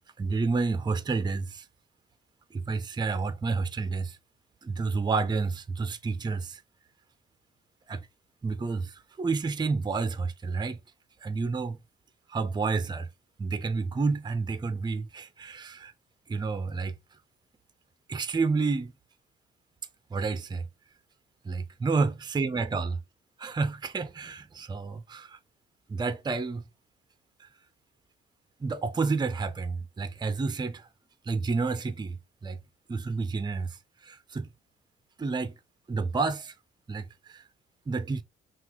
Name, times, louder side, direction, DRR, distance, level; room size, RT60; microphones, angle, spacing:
voice 1, 0.2-1.5 2.7-4.1 4.7-6.5 7.9-8.0 8.4-8.9 9.2-10.8 11.2-11.8 12.3-13.1 13.4-15.9 16.3-16.9 18.1-18.9 20.1-20.6 21.5-23.0 23.4-25.3 25.9-26.6 28.6-30.8 31.3-32.1 32.4-32.6 32.9-33.7 34.3-34.4 35.2-35.5 35.9-36.5 36.9-37.0 37.9-38.2, right 4 dB, 20° right, 0.5 m, -29 dB
5.8 x 2.4 x 3.0 m
cardioid pair, 90°, 20 cm